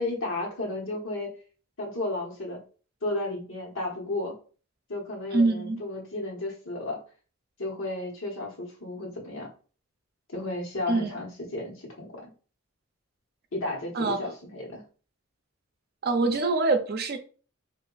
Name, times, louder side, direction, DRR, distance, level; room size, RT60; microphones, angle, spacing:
voice 1, 0.0-1.3 1.8-2.6 3.0-4.3 4.9-7.0 7.6-9.5 10.3-12.3 13.5-14.8, left 2 dB, 65° left, 1.3 m, -33 dB
voice 2, 5.3-5.8 10.9-11.2 13.9-14.2 16.0-17.2, right 3 dB, 50° right, 0.6 m, -24 dB
3.5 x 2.6 x 3.9 m
head